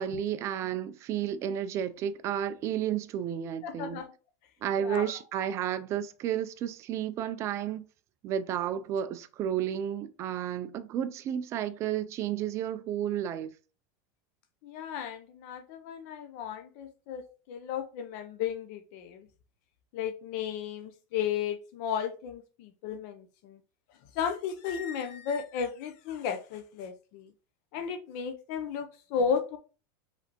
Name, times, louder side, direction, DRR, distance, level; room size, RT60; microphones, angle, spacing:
voice 1, 0.0-4.0 4.6-7.8 8.2-13.5, right 10 dB, 30° right, 0.4 m, -32 dB
voice 2, 3.6-4.1 4.8-5.1 14.6-19.3 19.9-23.6 24.2-27.3 27.7-29.6, left 7 dB, 50° left, 0.6 m, -34 dB
4.9 x 3.3 x 2.9 m
supercardioid pair, 160°, 10 cm